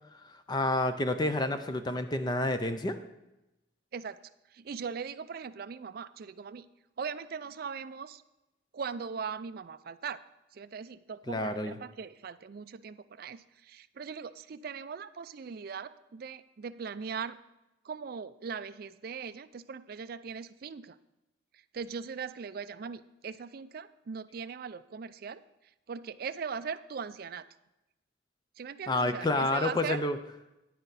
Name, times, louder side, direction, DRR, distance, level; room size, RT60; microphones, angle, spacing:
voice 1, 0.2-3.0 11.3-11.8 28.9-30.2, left 2 dB, 20° left, 9 dB, 0.5 m, -29 dB
voice 2, 4.5-6.7 7.0-8.2 8.7-10.2 10.5-17.4 17.8-21.0 21.7-25.4 25.9-27.4 28.6-30.0, right 6 dB, 50° right, 14 dB, 0.4 m, -40 dB
10.0 x 9.5 x 4.0 m, 0.95 s
head